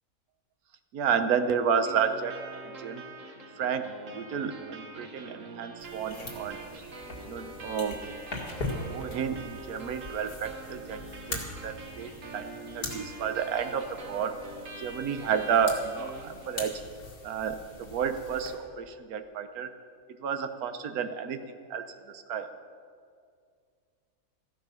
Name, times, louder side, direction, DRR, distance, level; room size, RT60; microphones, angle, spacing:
voice 1, 0.9-2.3 2.7-3.0 3.6-6.6 7.2-8.0 8.9-11.0 11.3-14.3 14.8-16.8 17.2-19.7 20.2-22.5, right 7 dB, 75° right, 9 dB, 1.3 m, -31 dB
sound 1, 1.8-16.8, right 3 dB, 60° right, 1.7 m, -44 dB
sound 2, 5.8-18.5, left 2 dB, 85° left, 2.5 m, -42 dB
14.5 x 12.0 x 5.8 m, 2.2 s
omnidirectional pair, 1.6 m